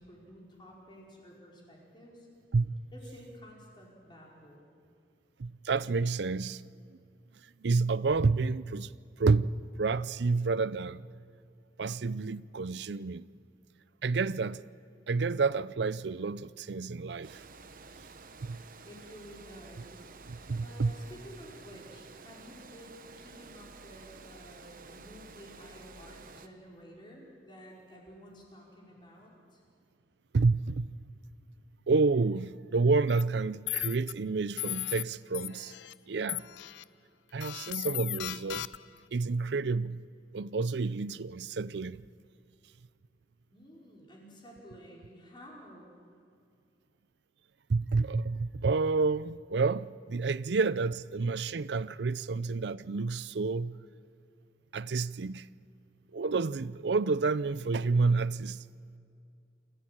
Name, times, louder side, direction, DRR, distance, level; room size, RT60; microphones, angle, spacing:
voice 1, 0.0-2.3 2.9-4.7 18.9-29.6 43.5-45.9, equal, 25° left, 5.0 m, -52 dB
voice 2, 5.4-6.6 7.6-8.9 9.2-9.5 9.8-11.1 11.8-13.3 14.0-14.6 15.1-17.4 18.4-18.6 20.3-20.9 30.3-30.9 31.9-35.7 36.1-36.4 37.3-38.7 39.1-40.0 40.3-42.1 47.7-53.8 54.7-55.5 56.1-58.6, right 4 dB, 65° right, 0.5 m, -29 dB
Water, 17.2-26.5, right 4 dB, 50° right, 1.1 m, -51 dB
sound 1, 33.1-33.2 33.7-34.1 34.6-35.0 35.3-35.9 36.3-36.8 37.4-39.0, left 15 dB, 75° left, 0.5 m, -36 dB
28.0 x 14.0 x 8.9 m
head